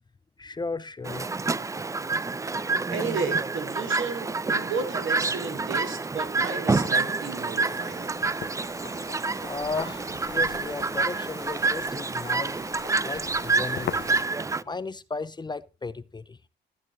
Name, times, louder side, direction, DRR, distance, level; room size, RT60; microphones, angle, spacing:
voice 1, 0.4-1.3 9.5-12.6 13.0-14.1 14.7-16.4, left 4 dB, 20° left, 0.7 m, -35 dB
Chirp tweet, 1.0-14.6, right 3 dB, 15° right, 0.4 m, -28 dB
voice 2, 2.9-8.1, right 4 dB, 75° right, 3.5 m, -33 dB
sound 1, 6.8-14.2, left 11 dB, 65° left, 0.8 m, -42 dB
13.0 x 7.6 x 3.9 m
cardioid pair, 90°, 20 cm